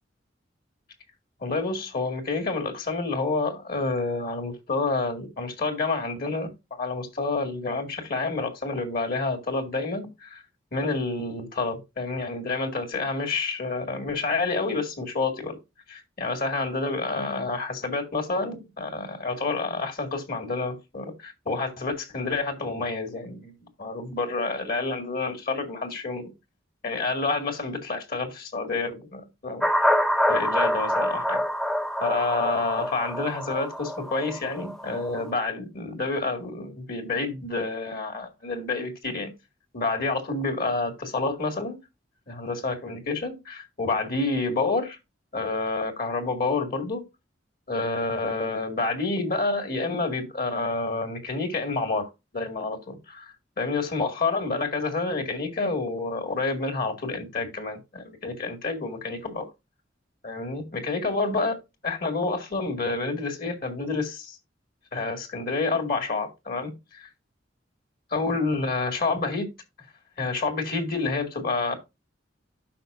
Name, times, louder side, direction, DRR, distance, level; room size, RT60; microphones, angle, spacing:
voice 1, 1.4-10.4 10.7-15.6 15.9-23.5 23.8-26.3 26.8-29.7 30.3-31.4 32.0-39.3 39.7-41.8 42.3-45.0 45.3-47.0 47.7-59.5 60.2-61.6 61.8-64.4 64.9-67.1 68.1-69.5 70.2-71.8, left 3 dB, 50° left, 2.2 m, -29 dB
sound 1, 29.6-35.2, equal, 5° left, 0.6 m, -26 dB
12.0 x 5.3 x 2.6 m
head